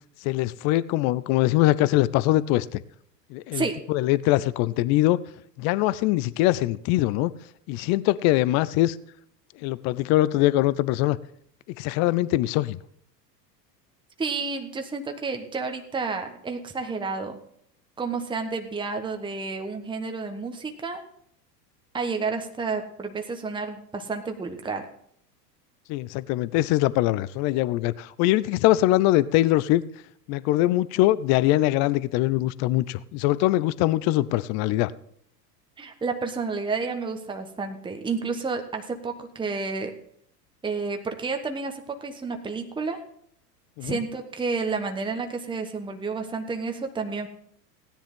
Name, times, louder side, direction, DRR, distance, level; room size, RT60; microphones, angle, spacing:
voice 1, 0.2-2.8 3.3-5.2 5.6-7.3 7.7-9.0 9.6-11.2 11.8-12.8 25.9-29.8 30.3-34.9 43.8-44.0, left 16 dB, 35° left, 19 dB, 0.5 m, -22 dB
voice 2, 14.2-17.4 18.0-21.0 21.9-24.9 35.8-39.9 40.6-43.0 43.8-47.3, right 4 dB, 10° right, 5 dB, 1.2 m, -30 dB
16.5 x 10.0 x 3.7 m, 0.66 s
hypercardioid pair, 90°, 49 cm